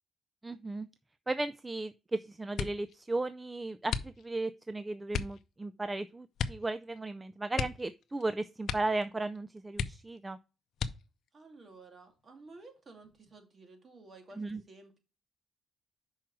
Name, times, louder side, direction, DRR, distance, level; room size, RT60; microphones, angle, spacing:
voice 1, 0.4-0.9 1.3-10.4 14.4-14.6, right 2 dB, 20° right, 0.4 m, -35 dB
sound 1, 2.5-3.0 3.9-4.5 5.1-5.4 6.4-6.7 7.0-7.1 7.5-8.3 8.6-9.1 9.4-9.5 9.7-10.3 10.7-11.3 12.0-12.6 13.0-13.4, left 7 dB, 70° left, 0.6 m, -36 dB
voice 2, 11.3-15.0, right 3 dB, 40° right, 2.2 m, -53 dB
6.0 x 4.7 x 5.9 m
cardioid pair, 90°, 0 cm